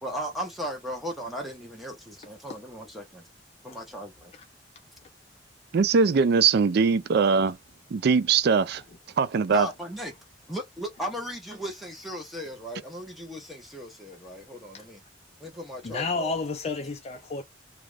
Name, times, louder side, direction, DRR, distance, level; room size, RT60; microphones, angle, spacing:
voice 1, 0.0-3.3 3.6-4.3 9.5-10.1 10.5-15.0 15.4-16.3, equal, ahead, 0.8 m, -36 dB
voice 2, 5.7-7.6 7.9-8.8 9.2-9.7, right 5 dB, 60° right, 0.4 m, -21 dB
voice 3, 15.8-17.4, left 3 dB, 35° left, 0.4 m, -30 dB
2.5 x 2.3 x 3.2 m
head